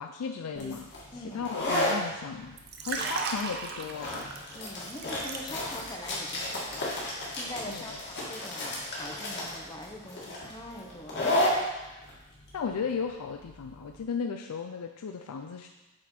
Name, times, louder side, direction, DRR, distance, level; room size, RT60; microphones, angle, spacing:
voice 1, 0.0-4.2 7.7-8.0 12.5-15.7, left 5 dB, 85° left, 4 dB, 0.4 m, -36 dB
sound 1, 0.5-14.0, left 1 dB, 50° left, 1.8 m, -33 dB
voice 2, 1.1-1.4 3.0-3.2 4.5-6.9 7.3-11.4, left 1 dB, 20° left, 2 dB, 0.8 m, -43 dB
Liquid, 2.5-5.9 6.2-6.5, right 4 dB, 45° right, 0.7 m, -36 dB
7.8 x 4.2 x 4.2 m, 1.1 s
head